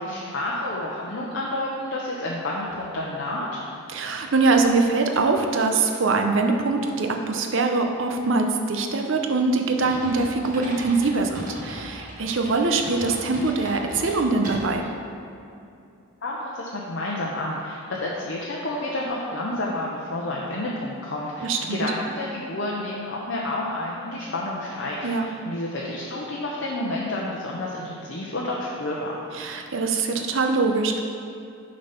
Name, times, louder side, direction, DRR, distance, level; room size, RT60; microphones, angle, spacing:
voice 1, 0.0-3.6 16.2-29.2, left 1 dB, 55° left, -4 dB, 0.7 m, -30 dB
voice 2, 3.9-14.9 21.4-21.8 25.0-25.3 29.3-31.0, right 3 dB, 60° right, 4 dB, 0.6 m, -23 dB
sound 1, 9.8-14.9, right 1 dB, 40° right, 1.6 m, -37 dB
6.5 x 4.0 x 5.7 m, 2.6 s
head